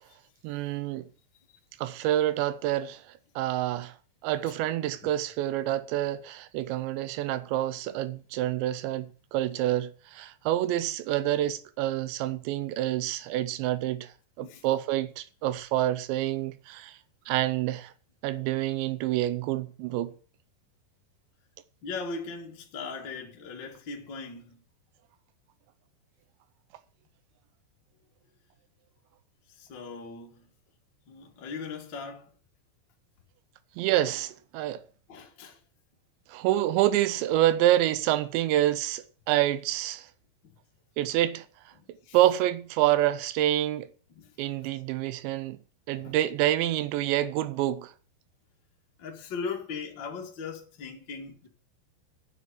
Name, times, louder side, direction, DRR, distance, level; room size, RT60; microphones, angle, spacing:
voice 1, 0.4-1.1 1.8-3.0 3.4-3.9 4.2-14.1 14.4-17.0 17.3-17.9 18.2-20.1 33.8-34.8 36.3-40.1 41.0-41.5 42.1-43.9 44.4-45.6 45.9-47.9, right 13 dB, 85° right, 2.9 m, -27 dB
voice 2, 21.8-24.6 29.6-30.5 31.1-32.3 35.1-35.6 40.4-40.5 41.7-42.2 44.1-44.3 46.0-46.2 49.0-51.5, left 4 dB, 40° left, 1.6 m, -39 dB
9.8 x 7.2 x 7.4 m
omnidirectional pair, 5.2 m